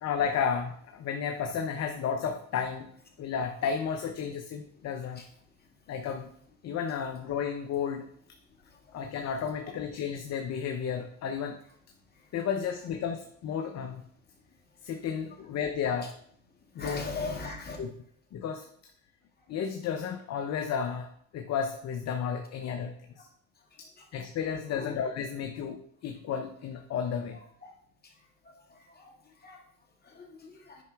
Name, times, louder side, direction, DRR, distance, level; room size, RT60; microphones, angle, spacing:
voice 1, 0.0-2.9 3.2-5.2 5.9-6.3 6.6-8.1 8.9-11.6 12.3-14.0 14.8-16.1 16.7-17.1 17.8-17.9 18.3-18.6 19.5-23.3 23.8-27.4, left 7 dB, 40° left, 5 dB, 0.8 m, -32 dB
voice 2, 16.8-17.8 24.7-24.9 27.6-27.7 28.5-28.6 29.4-29.6 30.2-30.8, left 3 dB, 25° left, -1 dB, 2.3 m, -38 dB
9.3 x 5.6 x 3.5 m, 0.66 s
supercardioid pair, 95°, 40 cm